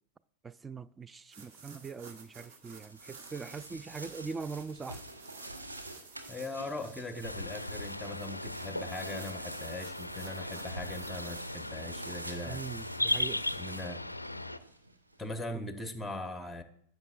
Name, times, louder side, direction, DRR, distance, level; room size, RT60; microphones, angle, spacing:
voice 1, 0.4-5.0 12.5-13.4 15.5-15.6, right 5 dB, 15° right, 0.3 m, -42 dB
sound 1, 1.3-11.5, right 5 dB, 50° right, 1.5 m, -53 dB
sound 2, 2.7-15.2, right 1 dB, 80° right, 1.0 m, -48 dB
voice 2, 6.3-12.7 13.5-14.0 15.2-16.6, left 2 dB, 5° left, 1.0 m, -40 dB
sound 3, 7.2-14.6, left 1 dB, 85° left, 0.4 m, -37 dB
15.0 x 7.0 x 2.4 m
figure-of-eight pair, 90°, 0 cm